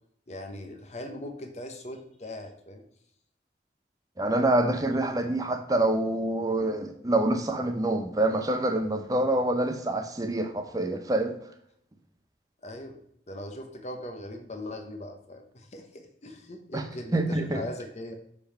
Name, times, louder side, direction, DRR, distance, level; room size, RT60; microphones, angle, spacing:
voice 1, 0.3-2.8 12.6-13.0 13.3-18.1, left 1 dB, 40° left, 0.8 m, -40 dB
voice 2, 4.2-11.3 16.7-16.8 17.1-17.6, right 1 dB, 20° right, 0.6 m, -26 dB
6.8 x 3.6 x 4.4 m
head